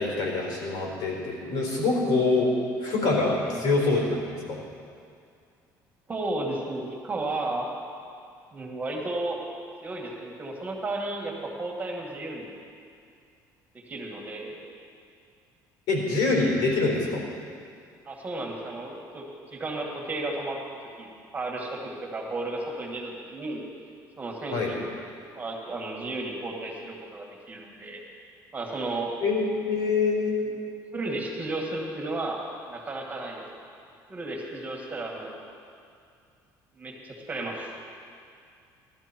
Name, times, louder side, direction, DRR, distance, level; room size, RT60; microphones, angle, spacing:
voice 1, 0.0-2.5 2.8-4.2 4.5-4.6 15.9-17.2 24.5-24.7 29.2-30.4, left 3 dB, 75° left, -1 dB, 4.2 m, -25 dB
voice 2, 6.1-7.7 8.5-9.4 9.8-12.5 13.7-14.6 18.1-19.3 19.5-20.6 21.0-21.1 21.3-23.6 24.2-24.9 25.3-28.0 28.5-29.1 30.5-30.6 30.9-32.4 32.7-33.4 34.1-35.3 36.8-37.7, right 2 dB, 20° right, -1 dB, 2.2 m, -33 dB
17.0 x 12.5 x 4.6 m, 2.3 s
cardioid pair, 125°, 7 cm